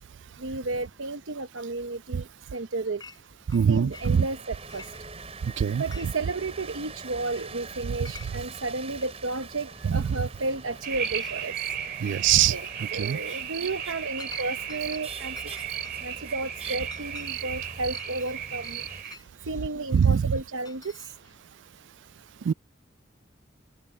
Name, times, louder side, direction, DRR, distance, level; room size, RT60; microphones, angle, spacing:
voice 1, 0.4-3.0 3.7-4.8 5.8-11.5 12.0-12.2 12.5-12.7 12.9-15.3 16.0-18.8 19.4-21.1, right 3 dB, 85° right, 0.9 m, -33 dB
Chink clink, 3.0-3.2 3.5-4.4 4.7-5.4 5.8-6.4 6.6-6.7 7.3-7.5 7.7-8.6 9.0-9.1 10.0-10.1 10.5-10.8 11.2-11.4 11.8-12.3 12.7-13.0 13.5-15.1 15.4-19.3 19.9-21.4, left 5 dB, 20° left, 5.3 m, -49 dB
voice 2, 3.5-4.2 5.4-5.8 9.8-10.0 12.0-12.6 12.9-13.2 19.9-20.3 22.4-22.5, right 8 dB, 65° right, 0.3 m, -22 dB
sound 1, 3.9-19.0, right 4 dB, 30° right, 5.8 m, -44 dB
sound 2, 10.8-19.2, right 9 dB, 50° right, 2.3 m, -35 dB
head